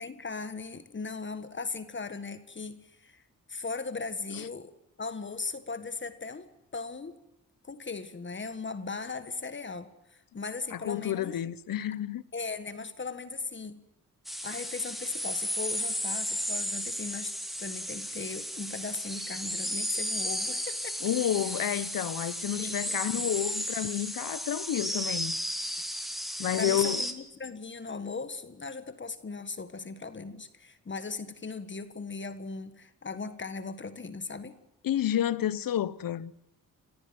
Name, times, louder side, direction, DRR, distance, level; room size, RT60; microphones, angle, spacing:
voice 1, 0.0-3.2 3.5-7.2 7.6-11.4 12.3-13.8 14.4-21.0 22.6-23.3 26.5-34.6, left 4 dB, 35° left, 1.7 m, -38 dB
voice 2, 10.7-12.2 21.0-25.4 26.4-27.0 34.8-36.3, left 11 dB, 75° left, 1.0 m, -30 dB
sound 1, 14.2-27.1, equal, ahead, 2.6 m, -34 dB
28.0 x 15.0 x 9.5 m
cardioid pair, 110°, 34 cm